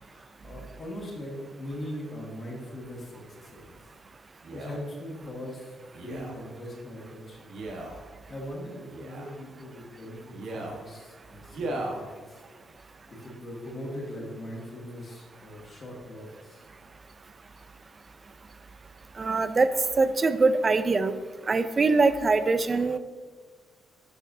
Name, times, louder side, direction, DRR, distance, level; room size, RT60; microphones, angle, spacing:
voice 1, 0.0-3.7 4.5-7.5 7.9-8.0 8.3-12.4 13.1-16.6, left 1 dB, 45° left, -4 dB, 1.8 m, -40 dB
Male speech man speaking, 4.4-4.8 5.9-6.4 7.5-8.0 8.9-9.3 10.3-10.8 11.5-12.0 12.7-12.8, right 2 dB, 70° right, 1.2 m, -36 dB
voice 2, 19.2-19.7 20.0-21.2 21.5-23.0, right 3 dB, 35° right, 12 dB, 0.4 m, -23 dB
12.0 x 4.6 x 2.7 m, 1.4 s
cardioid pair, 90°, 0 cm